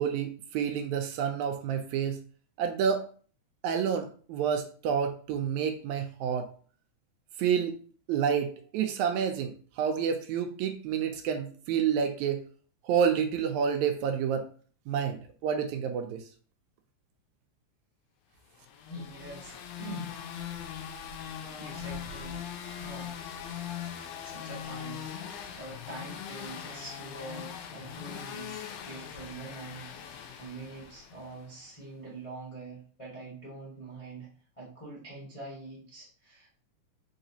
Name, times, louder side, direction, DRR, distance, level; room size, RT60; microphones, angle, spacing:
voice 1, 0.0-2.2 2.6-3.0 3.6-6.5 7.4-7.8 8.1-12.4 12.8-14.5 14.9-16.2, right 7 dB, 80° right, 6 dB, 1.8 m, -29 dB
sound 1, 18.6-31.5, left 8 dB, 85° left, 1.4 m, -41 dB
voice 2, 18.9-20.2 21.2-22.4 22.8-23.3 23.6-23.8 24.2-34.3 34.6-36.5, right 2 dB, 35° left, -8 dB, 0.5 m, -45 dB
4.2 x 4.0 x 2.7 m, 0.42 s
omnidirectional pair, 3.5 m